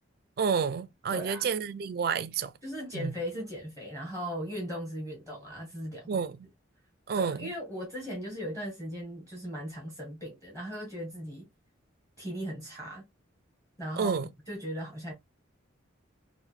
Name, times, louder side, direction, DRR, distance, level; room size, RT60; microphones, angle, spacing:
voice 1, 0.4-2.5 2.9-3.1 6.1-6.5 7.1-7.5 14.0-14.3, right 6 dB, 50° right, 0.3 m, -30 dB
voice 2, 1.1-1.5 2.6-6.2 7.1-11.5 12.2-13.0 13.8-14.2 14.5-15.1, equal, 15° left, 1.1 m, -38 dB
4.4 x 2.1 x 2.4 m
head